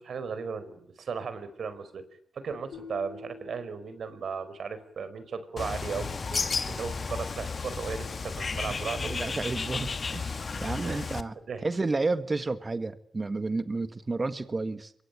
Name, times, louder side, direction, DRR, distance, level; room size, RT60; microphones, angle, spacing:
voice 1, 0.0-2.0 2.3-9.3 10.8-11.1 11.5-11.7, right 5 dB, 65° right, 5.1 m, -36 dB
sound 1, 2.7-4.9, left 4 dB, 80° left, 5.0 m, -48 dB
Bird, 5.6-11.2, left 4 dB, 45° left, 1.6 m, -33 dB
voice 2, 9.0-11.3 11.6-14.9, right 3 dB, 30° right, 1.7 m, -31 dB
26.5 x 23.5 x 9.2 m
cardioid pair, 80°, 0 cm